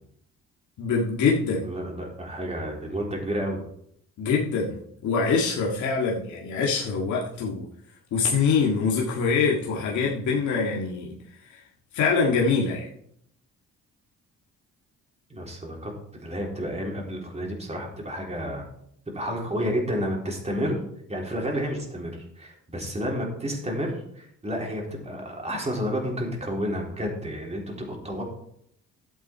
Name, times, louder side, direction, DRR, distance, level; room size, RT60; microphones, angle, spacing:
voice 1, 0.8-1.6 4.2-4.8 5.0-7.6 8.1-11.2 11.4-11.6 11.9-12.9, left 5 dB, 70° left, -3 dB, 1.9 m, -24 dB
voice 2, 1.6-3.6 15.3-18.7 19.1-20.8 21.1-28.2, equal, 20° right, -1 dB, 3.8 m, -30 dB
12.0 x 8.0 x 4.5 m, 0.72 s
cardioid pair, 90°, 30 cm